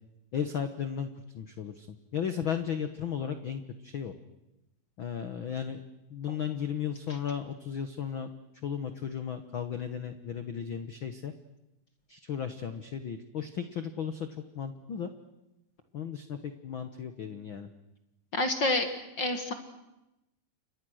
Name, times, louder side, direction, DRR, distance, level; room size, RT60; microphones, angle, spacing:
voice 1, 0.3-1.1 1.3-4.1 5.0-5.8 6.1-8.3 8.6-11.3 12.1-14.3 14.5-15.1 15.9-17.7, left 8 dB, 85° left, 9 dB, 1.1 m, -35 dB
voice 2, 18.3-18.9 19.2-19.5, left 2 dB, 40° left, 7 dB, 1.7 m, -27 dB
30.0 x 25.5 x 6.4 m, 0.94 s
omnidirectional pair, 4.1 m